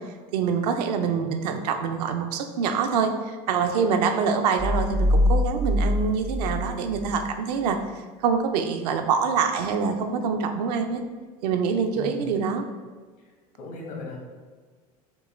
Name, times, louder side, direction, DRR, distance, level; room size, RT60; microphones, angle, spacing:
voice 1, 0.3-3.1 3.5-7.8 8.2-11.0 11.4-12.7, right 6 dB, 75° right, 6 dB, 0.5 m, -25 dB
sound 1, 4.6-7.3, left 1 dB, ahead, 0.3 m, -24 dB
voice 2, 11.9-12.3 13.6-14.2, left 3 dB, 70° left, -1 dB, 1.2 m, -37 dB
5.3 x 2.4 x 3.2 m, 1.5 s
hypercardioid pair, 85°, 20 cm